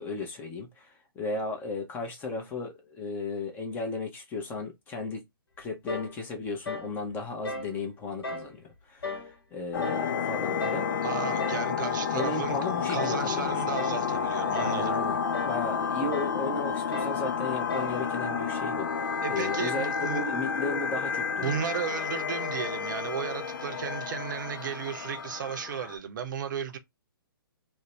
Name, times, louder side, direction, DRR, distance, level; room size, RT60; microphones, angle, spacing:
voice 1, 0.0-5.2 5.6-10.9 12.1-13.6 14.6-21.6, left 3 dB, 15° left, 0.6 m, -35 dB
sound 1, 5.9-6.2 6.6-6.9 7.4-7.7 8.2-8.5 9.0-9.3 9.8-10.1 10.6-10.9 11.4-11.7 12.2-12.5 13.0-13.3 13.8-14.1 14.5-14.9 15.3-15.6 16.1-16.4 16.9-17.2 17.7-18.0, left 2 dB, 75° left, 1.0 m, -36 dB
sound 2, 9.7-26.0, left 6 dB, 60° left, 0.5 m, -31 dB
voice 2, 11.0-12.6 12.9-15.0 19.2-20.2 21.4-26.8, right 7 dB, 55° right, 0.6 m, -34 dB
2.5 x 2.1 x 3.0 m
hypercardioid pair, 135°, 13 cm